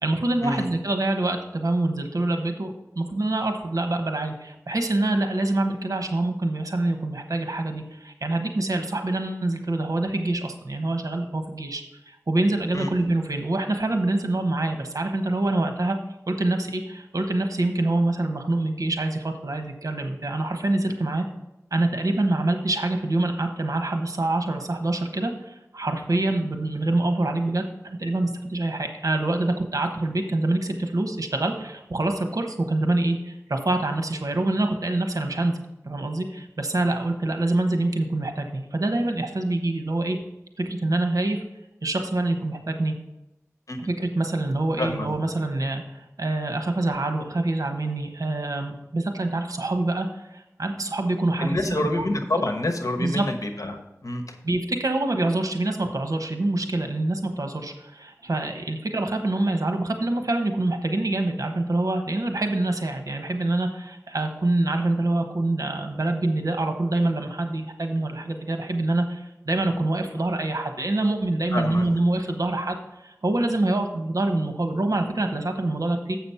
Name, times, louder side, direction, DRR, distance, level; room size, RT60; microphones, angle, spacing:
voice 1, 0.0-16.0 16.3-21.3 21.7-35.6 35.8-40.2 40.6-41.4 41.8-42.9 43.8-52.0 53.0-53.2 54.4-72.8 73.0-76.2, right 2 dB, 85° right, 6 dB, 1.0 m, -25 dB
voice 2, 51.4-54.4 71.5-71.9, left 1 dB, 75° left, 5 dB, 1.1 m, -27 dB
7.6 x 6.1 x 5.6 m, 0.91 s
wide cardioid pair, 45°, 6 cm